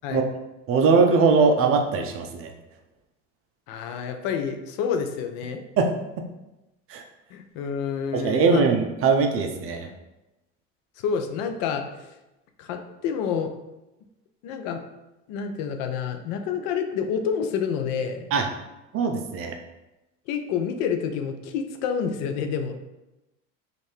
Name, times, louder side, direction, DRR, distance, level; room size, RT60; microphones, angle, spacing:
voice 1, 0.7-2.5 5.8-5.9 6.9-7.0 8.1-9.9 18.3-18.5 18.9-19.6, right 4 dB, 40° right, 4 dB, 0.5 m, -21 dB
voice 2, 3.7-5.6 7.3-8.6 11.0-12.1 12.6-13.5 14.4-14.8 15.3-18.3 20.3-22.8, left 7 dB, 60° left, 6 dB, 0.5 m, -28 dB
2.6 x 2.5 x 3.2 m, 0.97 s
hypercardioid pair, 80°, 37 cm